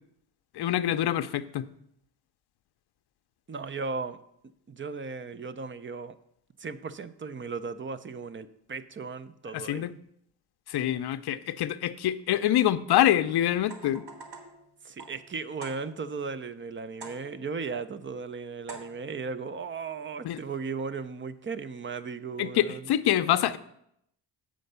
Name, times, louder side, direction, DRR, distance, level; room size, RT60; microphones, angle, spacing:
voice 1, 0.5-1.7 9.5-9.9 10.7-14.0 20.2-20.4 22.4-23.6, left 12 dB, 65° left, 12 dB, 0.6 m, -25 dB
voice 2, 3.5-4.2 4.7-6.1 6.6-9.9 14.8-22.9, right 5 dB, 25° right, 14 dB, 0.6 m, -36 dB
sound 1, 13.6-16.2 17.0-17.6 18.7-19.2, right 3 dB, 65° right, 1.8 m, -47 dB
7.7 x 5.2 x 6.7 m, 0.74 s
cardioid pair, 85°, 43 cm